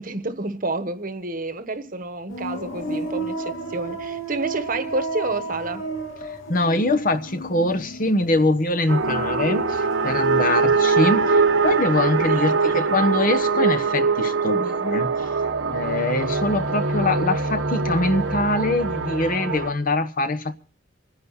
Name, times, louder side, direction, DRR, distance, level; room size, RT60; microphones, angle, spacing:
voice 1, 0.0-5.9 12.2-12.5, right 2 dB, 45° right, 1.2 m, -29 dB
Boris Extended Moan, 2.3-9.2 9.4-10.2, right 3 dB, 80° left, 2.6 m, -33 dB
voice 2, 6.2-15.3 15.7-20.5, left 2 dB, 45° left, 1.0 m, -23 dB
sound 1, 8.9-19.7, right 4 dB, 75° right, 1.1 m, -22 dB
26.5 x 10.0 x 4.1 m
head